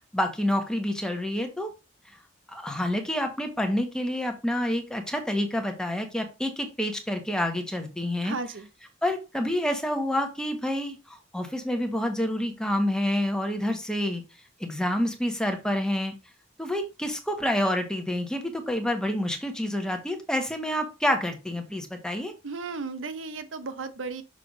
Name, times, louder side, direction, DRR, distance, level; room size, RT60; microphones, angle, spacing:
voice 1, 0.1-1.7 2.5-8.4 9.0-11.0 11.3-14.2 14.6-16.1 16.6-22.3, left 1 dB, 5° left, 1.1 m, -28 dB
voice 2, 8.2-8.7 22.4-24.2, right 4 dB, 85° right, 0.8 m, -34 dB
6.3 x 3.4 x 5.2 m
head